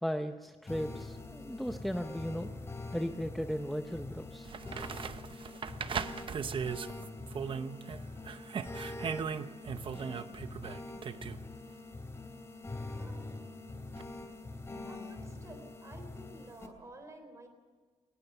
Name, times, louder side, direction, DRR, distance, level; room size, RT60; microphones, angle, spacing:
voice 1, 0.0-2.5 2.9-4.5, equal, ahead, 7 dB, 0.7 m, -36 dB
sound 1, 0.7-16.7, left 2 dB, 20° left, 2.8 m, -44 dB
sound 2, 3.9-4.0 4.4-8.0 8.2-11.4 14.0-14.1, right 6 dB, 45° right, 0.8 m, -38 dB
voice 2, 12.9-13.3 14.9-17.5, right 2 dB, 25° right, 6 dB, 3.8 m, -52 dB
22.0 x 19.5 x 7.0 m, 1.4 s
wide cardioid pair, 175°, 12 cm